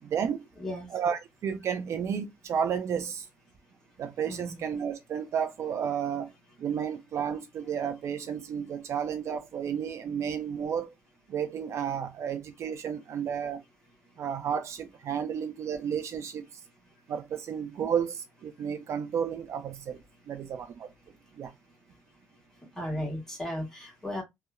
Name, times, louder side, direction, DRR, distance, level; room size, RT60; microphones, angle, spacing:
voice 1, 0.0-0.5 0.9-3.3 4.0-6.3 6.6-10.9 11.3-13.6 14.2-16.6 17.1-20.9 21.4-21.5, right 7 dB, 60° right, 0.3 m, -32 dB
voice 2, 0.6-0.9 4.2-4.7 22.8-24.2, left 1 dB, 10° left, 1.2 m, -35 dB
2.9 x 2.1 x 2.3 m
cardioid pair, 140°, 6 cm